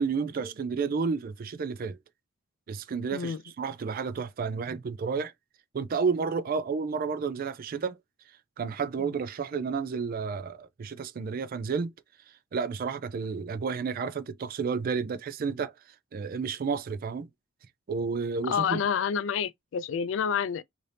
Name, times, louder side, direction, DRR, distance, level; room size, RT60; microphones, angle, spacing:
voice 1, 0.0-2.0 2.7-5.3 5.7-8.0 8.6-11.9 12.5-15.7 16.1-17.3 17.9-18.8, right 5 dB, 50° right, 0.3 m, -31 dB
voice 2, 18.4-20.6, left 7 dB, 75° left, 0.3 m, -28 dB
2.7 x 2.6 x 3.3 m
head